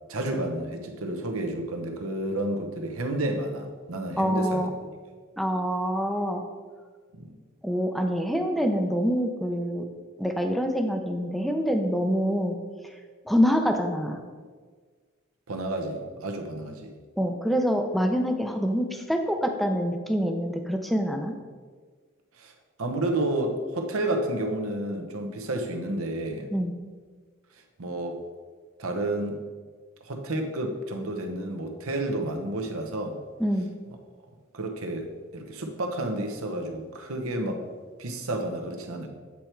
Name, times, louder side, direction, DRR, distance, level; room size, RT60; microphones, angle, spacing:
voice 1, 0.1-4.7 7.1-7.4 15.5-16.9 22.4-22.5 22.8-26.5 27.8-28.2 28.8-29.4 30.0-33.2 34.5-37.6 38.0-39.1, right 1 dB, 75° right, 4 dB, 0.9 m, -30 dB
voice 2, 4.2-4.7 5.4-6.4 7.6-9.8 10.2-12.6 13.3-14.2 17.2-21.3 26.5-26.7 33.4-33.7, equal, ahead, 4 dB, 0.5 m, -25 dB
8.4 x 4.5 x 4.5 m, 1.5 s
head